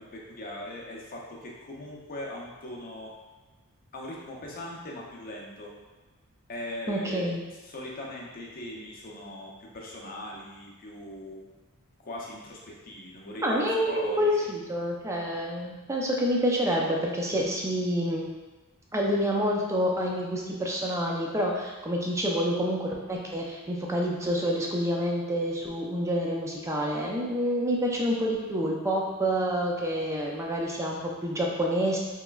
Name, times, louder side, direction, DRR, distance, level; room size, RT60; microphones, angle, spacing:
voice 1, 0.0-3.1 3.9-5.7 6.5-7.3 7.6-11.4 12.0-13.6 13.9-14.5, left 1 dB, 40° left, -2 dB, 0.6 m, -40 dB
voice 2, 6.9-7.4 13.4-18.2 18.9-32.0, equal, 15° right, -1 dB, 0.4 m, -28 dB
3.3 x 3.0 x 2.3 m, 1.2 s
head